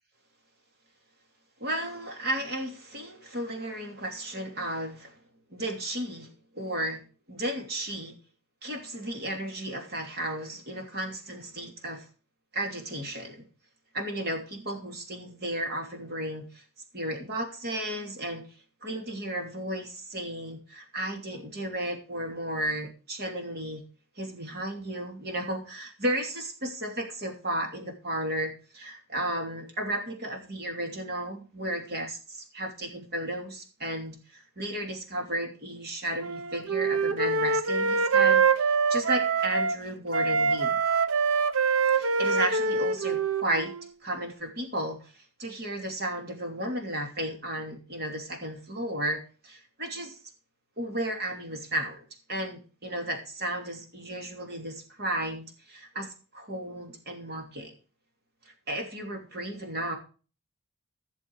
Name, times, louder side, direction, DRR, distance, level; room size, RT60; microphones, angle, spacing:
voice 1, 1.6-5.1 5.5-7.0 7.3-8.1 8.6-12.1 12.5-13.4 13.9-16.6 16.9-18.4 18.8-23.8 24.2-40.8 41.9-43.7 44.0-50.2 50.8-57.8 58.4-60.0, right 1 dB, 45° right, 4 dB, 2.9 m, -34 dB
Wind instrument woodwind instrument, 36.2-39.8 40.1-43.9, right 5 dB, 75° right, 0.8 m, -25 dB
15.0 x 6.9 x 4.7 m, 0.36 s
head